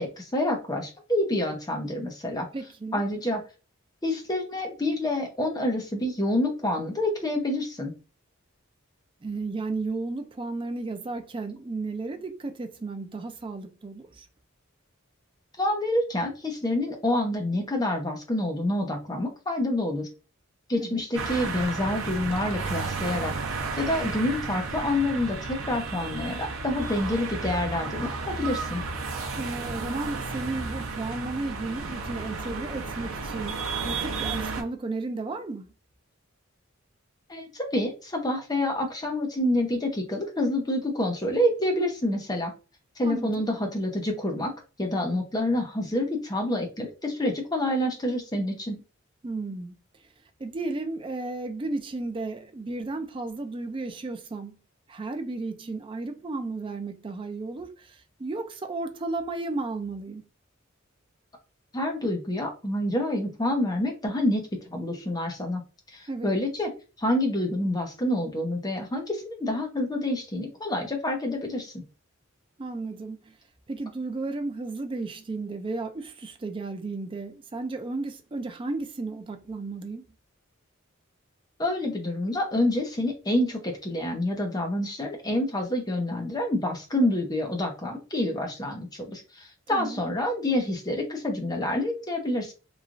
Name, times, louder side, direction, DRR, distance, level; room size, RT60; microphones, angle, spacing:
voice 1, 0.0-2.5 2.9-3.4 4.0-7.9 15.6-20.1 20.7-23.3 23.7-28.8 37.3-42.5 43.0-44.5 44.8-48.8 61.7-65.6 65.9-66.7 67.0-71.8 81.6-92.5, left 1 dB, 20° left, 0.6 m, -27 dB
voice 2, 2.5-3.0 9.2-14.3 20.8-21.0 29.3-35.7 43.0-43.5 49.2-49.7 50.4-54.6 54.9-60.2 66.1-66.3 72.6-73.3 73.7-80.1 89.7-90.0, right 3 dB, 25° right, 0.3 m, -34 dB
Haridwar traffic, 21.1-34.6, right 4 dB, 70° right, 0.6 m, -33 dB
3.0 x 2.3 x 2.4 m
head